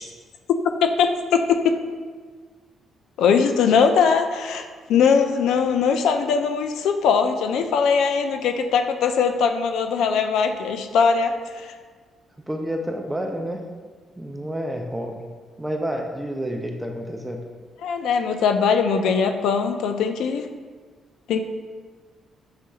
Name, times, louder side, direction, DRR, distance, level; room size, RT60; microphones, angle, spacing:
voice 1, 0.8-1.8 3.2-11.7 17.8-20.5 21.3-21.4, left 6 dB, 80° left, 7 dB, 0.3 m, -21 dB
voice 2, 12.5-13.7 14.2-17.5, equal, 10° right, 2 dB, 0.4 m, -29 dB
6.4 x 2.7 x 2.3 m, 1.5 s
cardioid pair, 90°, 0 cm